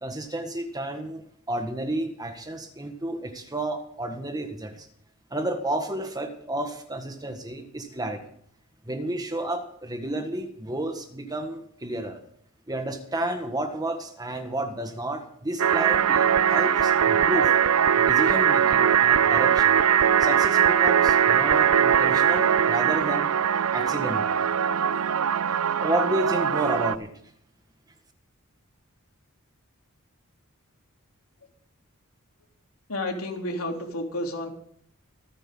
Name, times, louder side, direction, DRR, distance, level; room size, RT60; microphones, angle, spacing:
voice 1, 0.0-4.9 5.3-8.2 8.8-12.2 12.7-17.5 17.9-19.8 20.2-23.3 23.7-24.4 25.8-27.1, right 1 dB, 20° right, 6 dB, 1.6 m, -31 dB
sound 1, 15.6-27.0, right 8 dB, 80° right, 0.5 m, -21 dB
voice 2, 32.9-34.5, left 1 dB, 80° left, 2 dB, 3.3 m, -31 dB
25.5 x 10.5 x 3.8 m, 0.64 s
head